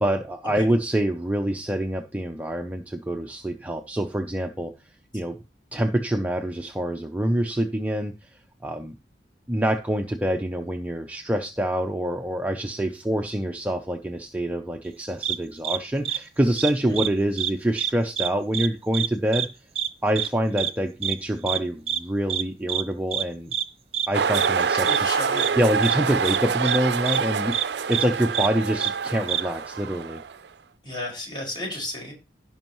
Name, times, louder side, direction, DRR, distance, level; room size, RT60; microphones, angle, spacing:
voice 1, 0.0-4.7 5.1-5.4 5.7-8.3 8.6-8.9 9.5-19.5 20.0-23.5 24.1-25.1 25.6-30.2, right 1 dB, 10° right, 4 dB, 0.6 m, -26 dB
sound 1, 15.2-15.4 15.6-15.8 16.0-16.2 16.6-17.1 17.4-17.5 17.8-18.3 18.5-18.7 18.9-19.1 19.3-19.5 19.8-19.9 20.2-20.3 20.6-20.7 21.0-21.1 21.5-21.6 21.9-22.0 22.3-22.4 22.7-22.8 23.1-23.2 23.5-23.6 23.9-24.1 24.3-24.5 24.9-25.0 25.4-25.5 25.8-26.0 26.2-26.4 26.6-26.8 27.1-27.2 27.5-27.6 27.9-28.0 28.3-28.5 28.8-28.9 29.3-29.4, right 10 dB, 35° right, 0.9 m, -26 dB
sound 2, 24.1-30.5, right 6 dB, 65° right, 0.5 m, -26 dB
voice 2, 24.8-25.5 30.8-32.1, left 1 dB, 25° left, 0 dB, 5.3 m, -33 dB
16.0 x 5.5 x 3.0 m, 0.27 s
head